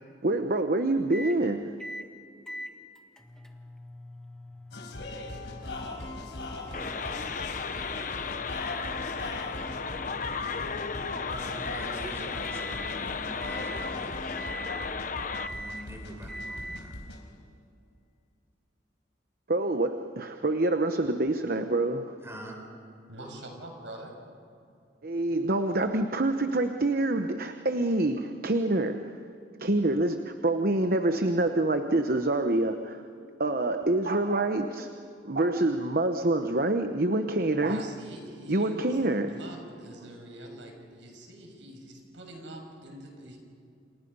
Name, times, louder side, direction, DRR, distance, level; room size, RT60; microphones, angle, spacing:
voice 1, 0.2-1.8 19.5-22.2 25.0-29.1 29.6-33.0 33.4-34.9 35.2-37.8 38.5-39.4, right 2 dB, 50° right, 7 dB, 1.0 m, -26 dB
sound 1, 1.1-1.4 1.8-2.1 2.5-13.0 13.4-14.0 14.4-14.9 15.3-15.9 16.3-16.8, equal, 5° left, 1.6 m, -44 dB
sound 2, 4.7-17.2, left 2 dB, 75° left, 4.8 m, -40 dB
sound 3, 6.7-15.5, left 5 dB, 45° left, 1.0 m, -34 dB
voice 2, 11.3-14.2 15.5-17.0 22.2-22.6, right 1 dB, 15° right, 2 dB, 4.4 m, -45 dB
voice 3, 23.1-24.2 37.6-39.0 39.3-43.4, right 1 dB, 90° right, 2 dB, 6.4 m, -44 dB
29.5 x 28.5 x 5.5 m, 2.5 s
head